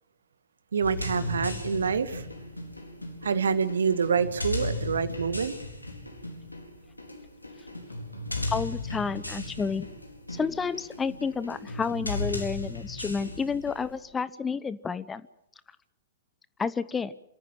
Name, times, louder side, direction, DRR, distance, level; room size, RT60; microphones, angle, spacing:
voice 1, 0.7-2.3 3.2-5.5, right 6 dB, 65° right, 12 dB, 1.8 m, -26 dB
sound 1, 0.8-14.0, left 2 dB, 85° left, 4.4 m, -36 dB
voice 2, 8.5-9.9 10.3-15.2 16.6-17.1, left 5 dB, 15° left, 17 dB, 0.8 m, -30 dB
26.5 x 14.5 x 9.2 m, 0.79 s
figure-of-eight pair, 105°, 0 cm